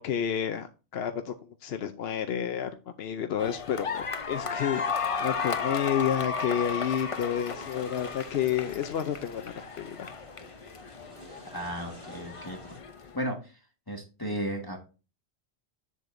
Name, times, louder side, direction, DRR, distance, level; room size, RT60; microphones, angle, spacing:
voice 1, 0.0-2.7 3.0-10.1, left 9 dB, 70° left, 7 dB, 0.9 m, -30 dB
sound 1, 3.4-13.2, left 5 dB, 40° left, 0.6 m, -34 dB
sound 2, 4.3-12.8, equal, 80° right, 3.5 m, -51 dB
voice 2, 11.5-12.8 13.1-13.6 13.9-14.8, right 1 dB, 20° left, 0 dB, 1.6 m, -34 dB
8.0 x 7.5 x 2.6 m, 0.32 s
omnidirectional pair, 1.1 m